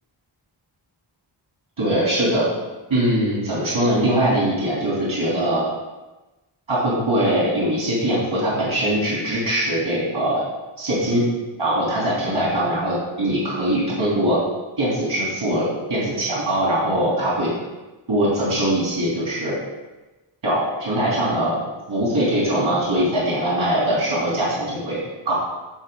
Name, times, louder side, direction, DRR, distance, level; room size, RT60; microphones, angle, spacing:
voice 1, 1.8-2.5 2.9-5.6 6.7-10.4 10.8-11.3 11.6-14.4 14.8-17.5 18.1-19.6 20.4-21.6 21.9-25.0 25.2-25.3, right 1 dB, 65° right, -7 dB, 3.5 m, -21 dB
15.0 x 5.2 x 3.9 m, 1.1 s
wide cardioid pair, 65°, 48 cm